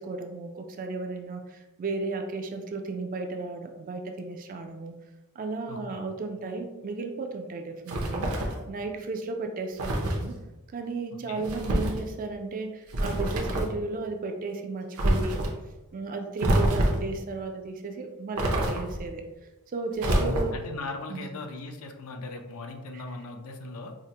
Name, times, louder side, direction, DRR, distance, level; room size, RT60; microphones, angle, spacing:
voice 1, 0.0-4.9 5.4-8.4 8.7-10.4 10.7-15.5 15.9-19.2 19.7-20.6 21.1-21.3 22.9-23.0, right 3 dB, 40° right, 5 dB, 0.3 m, -34 dB
voice 2, 5.7-6.0 11.3-11.5 20.1-23.9, left 3 dB, 65° left, 4 dB, 0.5 m, -38 dB
sound 1, 7.9-8.6 9.8-10.2 11.4-12.0 12.9-13.8 15.0-15.5 16.4-17.1 18.4-19.1 20.0-20.7, right 1 dB, 70° right, 0.7 m, -26 dB
4.8 x 2.0 x 2.8 m, 1.1 s
head